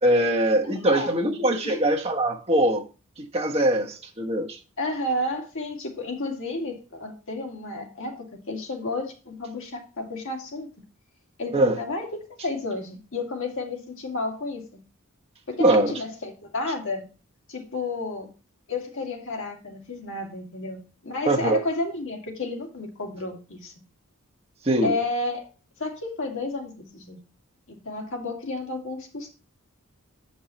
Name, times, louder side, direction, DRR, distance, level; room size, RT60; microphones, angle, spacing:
voice 1, 0.0-2.8 3.2-4.6 11.5-11.8 15.6-15.9 21.3-21.6 24.6-25.0, right 1 dB, 30° right, 1.2 m, -22 dB
voice 2, 0.6-1.4 1.6-1.8 4.8-10.7 11.4-14.8 15.5-17.1 17.5-18.3 18.7-20.8 21.0-23.7 24.8-25.5 25.8-27.2 27.7-29.3, left 2 dB, 65° left, 2.2 m, -32 dB
7.7 x 5.5 x 4.3 m
head